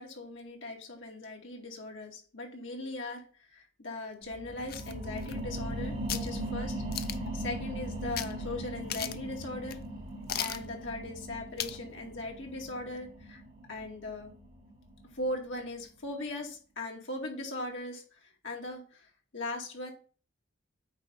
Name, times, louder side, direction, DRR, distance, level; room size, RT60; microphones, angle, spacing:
voice 1, 0.0-6.8 7.3-9.8 10.4-13.4 13.7-14.3 15.1-19.9, left 2 dB, 75° left, 0 dB, 2.2 m, -39 dB
sound 1, 4.2-15.4 15.8-15.9, right 1 dB, 40° right, 3.0 m, -39 dB
sound 2, 4.7-5.7 6.1-6.3 6.9-7.3 8.2-8.3 8.6-8.7 8.9-9.3 9.7-9.8 10.3-10.7 11.6-11.8 12.2-12.3, left 10 dB, 50° left, 0.5 m, -36 dB
8.9 x 3.5 x 5.2 m, 0.39 s
head